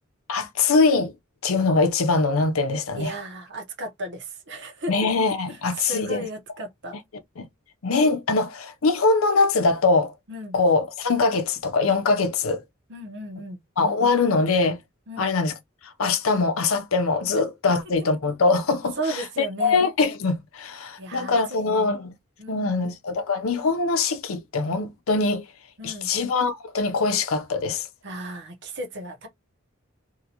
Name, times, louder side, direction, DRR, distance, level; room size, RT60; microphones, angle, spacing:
voice 1, 0.3-1.1 1.4-3.1 4.9-6.3 7.4-7.5 7.8-10.1 10.5-12.6 13.8-14.8 15.2-15.6 15.8-22.1 22.5-25.5 25.8-27.9, left 3 dB, 85° left, 0.6 m, -22 dB
voice 2, 3.0-5.1 5.7-7.0 10.3-10.6 12.9-13.6 15.1-15.3 19.0-19.8 21.0-21.9 22.4-22.9 25.8-26.1 28.0-29.3, right 1 dB, 55° right, 0.9 m, -34 dB
2.7 x 2.5 x 2.8 m
head